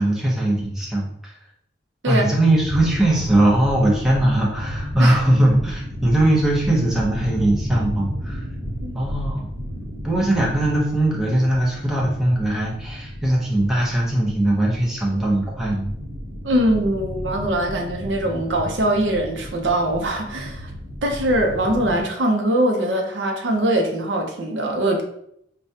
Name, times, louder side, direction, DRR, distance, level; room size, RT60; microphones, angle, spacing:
voice 1, 0.0-1.4 2.1-8.5 8.9-9.5 10.0-15.9, right 1 dB, ahead, -4 dB, 0.7 m, -20 dB
sound 1, 2.5-22.0, equal, 50° right, 0.9 m, -33 dB
voice 2, 16.4-20.7 21.0-25.0, right 1 dB, 85° right, 2 dB, 0.7 m, -22 dB
4.8 x 2.2 x 2.7 m, 0.72 s
head